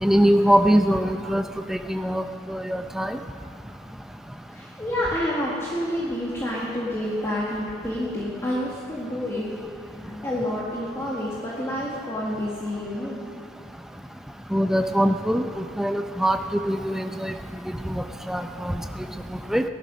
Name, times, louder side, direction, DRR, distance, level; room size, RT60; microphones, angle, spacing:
voice 1, 0.0-1.4 1.7-3.2 14.5-16.4 16.7-17.3 17.9-18.8 19.5-19.6, equal, ahead, 7 dB, 0.6 m, -22 dB
voice 2, 4.5-9.5 9.9-13.2, left 1 dB, 15° left, -6 dB, 1.7 m, -28 dB
18.0 x 12.0 x 5.1 m, 2.3 s
head